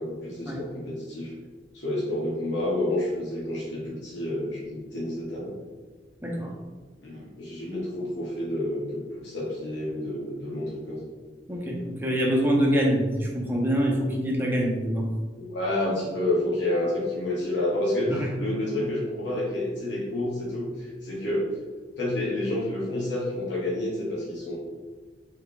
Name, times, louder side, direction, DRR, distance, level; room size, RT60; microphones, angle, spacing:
voice 1, 0.0-1.3 1.7-5.5 6.2-6.3 7.0-11.1 15.4-21.5 21.9-24.6, left 1 dB, 85° left, -6 dB, 1.4 m, -29 dB
voice 2, 6.2-6.5 11.5-15.1 18.1-18.3, equal, 10° right, -2 dB, 0.7 m, -25 dB
3.9 x 3.5 x 3.6 m, 1.4 s
head